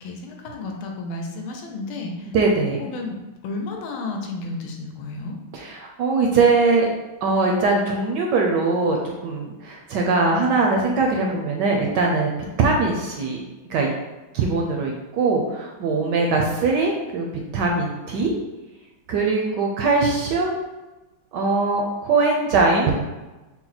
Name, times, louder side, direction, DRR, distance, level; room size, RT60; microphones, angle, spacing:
voice 1, 0.0-2.3 2.8-5.4, left 3 dB, 90° left, 2 dB, 1.5 m, -32 dB
voice 2, 2.3-2.9 5.5-6.9 7.2-12.3 12.6-13.4 13.7-13.9 14.3-17.2 17.5-18.3 19.1-20.6 21.3-22.9, right 3 dB, 75° right, 0 dB, 1.0 m, -21 dB
4.3 x 2.1 x 3.9 m, 1.1 s
omnidirectional pair, 2.3 m